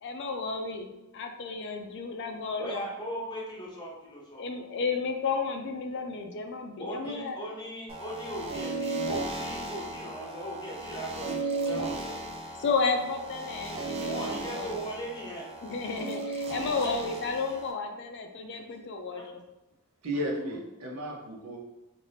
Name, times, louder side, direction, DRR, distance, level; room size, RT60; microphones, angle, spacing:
voice 1, 0.0-2.9 4.4-7.4 12.6-14.8 15.6-19.4, left 4 dB, 50° left, 5 dB, 0.4 m, -32 dB
voice 2, 2.6-4.4 6.8-12.2 14.1-15.5 16.8-16.9 19.1-19.2 20.2-20.6 21.3-21.4, equal, 20° left, -3 dB, 0.7 m, -38 dB
sound 1, 7.9-17.7, right 2 dB, 25° right, 0.4 m, -35 dB
voice 3, 20.0-21.6, equal, 85° right, -1 dB, 0.7 m, -34 dB
2.6 x 2.5 x 3.3 m, 1.0 s
head